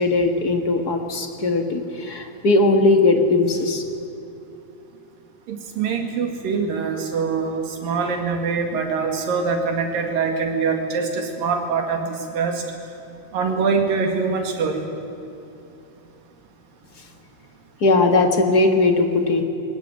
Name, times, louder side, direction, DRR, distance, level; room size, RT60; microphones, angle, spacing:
voice 1, 0.0-3.8 17.8-19.4, left 2 dB, 45° left, 5 dB, 1.3 m, -19 dB
voice 2, 5.5-12.6 13.3-14.9, right 5 dB, 80° right, 4 dB, 4.0 m, -24 dB
22.0 x 18.5 x 9.4 m, 2.8 s
omnidirectional pair, 4.0 m